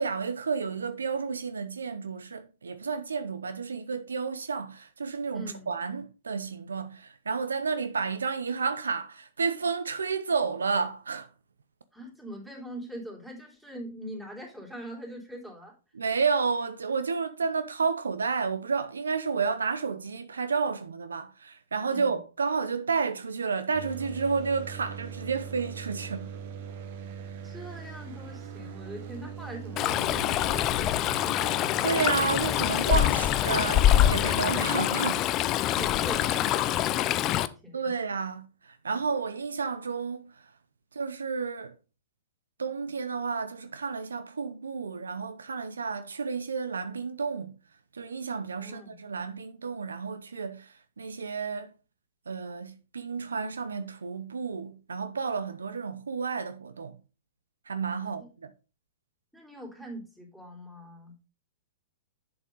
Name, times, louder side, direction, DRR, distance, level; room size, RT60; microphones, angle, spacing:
voice 1, 0.0-11.3 15.9-26.3 31.8-35.3 37.7-40.3 40.9-41.7 42.6-47.5 47.9-51.7 52.3-57.0 57.7-58.5, right 5 dB, 75° right, 0.7 m, -31 dB
voice 2, 5.3-5.7 11.9-15.7 21.9-22.2 27.4-32.2 35.6-37.9 48.5-49.0 58.0-58.3 59.3-61.2, equal, 5° right, 3.6 m, -43 dB
sound 1, 23.7-34.6, right 7 dB, 55° right, 1.2 m, -42 dB
Stream, 29.8-37.5, left 12 dB, 35° left, 0.5 m, -25 dB
7.8 x 7.2 x 3.8 m
figure-of-eight pair, 110°, 0 cm